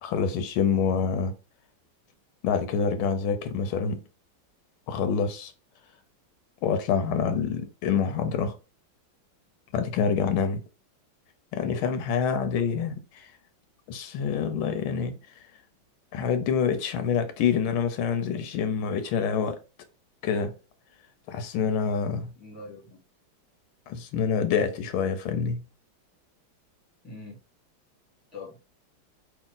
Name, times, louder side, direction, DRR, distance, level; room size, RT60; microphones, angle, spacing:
voice 1, 0.0-1.3 2.4-4.0 4.9-5.5 6.6-8.5 9.7-10.6 11.5-13.3 13.9-15.2 16.1-19.6 20.2-20.5 21.3-22.3 23.9-25.6, left 6 dB, 90° left, 1.5 m, -26 dB
voice 2, 22.3-23.0 27.0-27.4 28.3-28.6, left 3 dB, ahead, 1.2 m, -43 dB
3.5 x 2.5 x 3.7 m
omnidirectional pair, 2.2 m